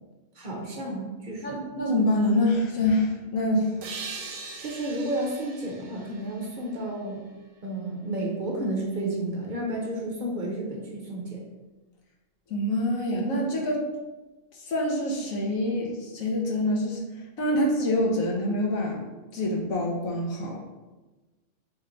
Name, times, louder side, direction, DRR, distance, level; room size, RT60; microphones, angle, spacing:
voice 1, 0.4-1.6 4.2-7.3 7.6-11.5, right 1 dB, 45° right, -1 dB, 0.7 m, -32 dB
voice 2, 1.4-3.7 12.5-13.9 14.6-17.0 17.4-19.0 19.3-20.6, left 1 dB, 90° left, 0 dB, 1.3 m, -26 dB
sound 1, 3.8-7.3, right 4 dB, 75° right, 0.9 m, -41 dB
3.4 x 3.2 x 3.8 m, 1.2 s
omnidirectional pair, 1.4 m